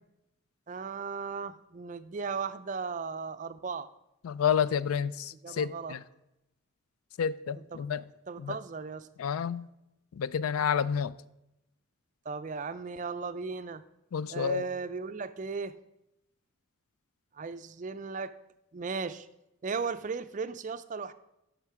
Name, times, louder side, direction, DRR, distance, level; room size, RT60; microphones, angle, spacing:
voice 1, 0.7-3.9 5.4-5.9 7.6-7.8 8.3-9.1 12.3-13.8 14.3-15.8 17.3-18.3 18.7-19.3 19.6-21.1, right 5 dB, 35° right, 0.4 m, -36 dB
voice 2, 4.2-6.0 7.2-8.0 8.4-8.6 9.2-9.6 10.1-11.1 14.1-14.7, left 7 dB, 90° left, 0.4 m, -29 dB
12.0 x 5.1 x 4.8 m
head